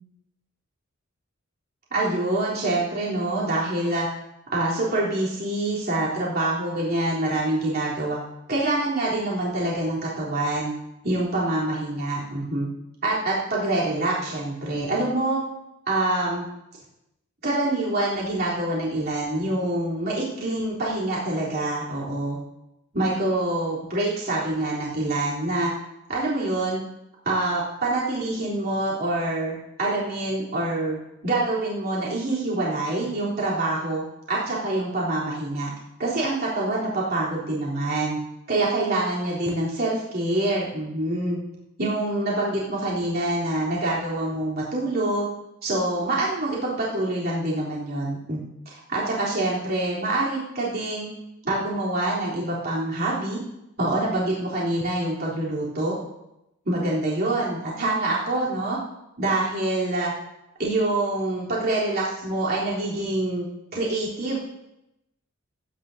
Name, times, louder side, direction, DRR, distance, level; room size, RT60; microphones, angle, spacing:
voice 1, 1.9-4.1 4.5-8.2 8.5-10.7 11.0-12.7 13.0-15.4 15.9-16.4 17.4-22.4 22.9-25.7 26.1-26.8 27.3-34.0 34.3-35.7 36.0-38.2 38.5-41.4 41.8-45.3 45.6-48.4 48.9-51.1 51.4-53.4 53.8-56.0 56.7-58.8 59.2-60.1 60.6-63.5 63.7-64.4, right 2 dB, 50° right, -7 dB, 3.6 m, -25 dB
20.5 x 9.8 x 2.8 m, 0.88 s
head